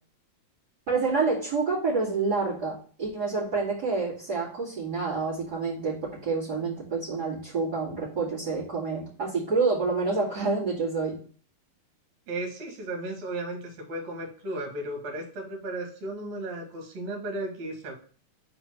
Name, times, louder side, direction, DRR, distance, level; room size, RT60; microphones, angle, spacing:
voice 1, 0.9-11.2, right 4 dB, 30° right, -9 dB, 2.7 m, -28 dB
voice 2, 12.3-17.9, right 1 dB, 55° right, 1 dB, 3.1 m, -35 dB
5.2 x 4.3 x 5.9 m, 0.42 s
omnidirectional pair, 3.8 m